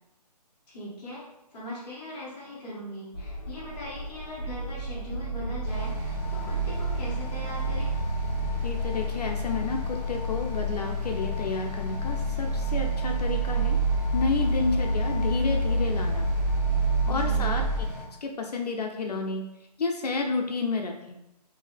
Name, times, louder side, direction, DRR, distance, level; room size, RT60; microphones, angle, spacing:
voice 1, 0.7-1.2 1.5-8.0 17.0-17.5, left 1 dB, 15° left, -10 dB, 1.1 m, -40 dB
sound 1, 3.1-17.8, right 1 dB, 40° left, 0.8 m, -28 dB
sound 2, 5.6-18.1, left 2 dB, 25° right, 0.9 m, -40 dB
voice 2, 8.6-13.8 14.1-16.3 17.1-17.6 18.2-19.5 19.8-20.9, left 3 dB, 70° left, 2 dB, 0.5 m, -30 dB
3.6 x 2.8 x 3.4 m, 0.91 s
hypercardioid pair, 170°, 21 cm